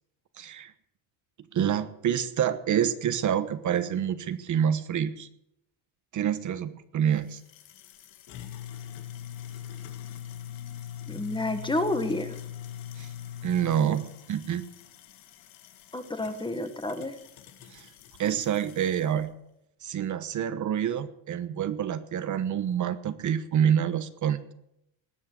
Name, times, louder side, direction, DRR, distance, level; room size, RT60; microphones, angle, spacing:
voice 1, 0.4-0.7 1.5-5.3 6.1-7.4 13.0-13.1 13.4-14.7 17.7-17.9 18.2-19.3 19.8-24.5, right 9 dB, 40° right, 11 dB, 1.1 m, -27 dB
sound 1, 7.2-19.2, left 10 dB, 85° left, 2.4 m, -43 dB
voice 2, 11.1-12.4 15.9-17.2, left 2 dB, 10° left, 9 dB, 1.3 m, -30 dB
19.5 x 8.6 x 8.3 m, 0.78 s
cardioid pair, 165°, 44 cm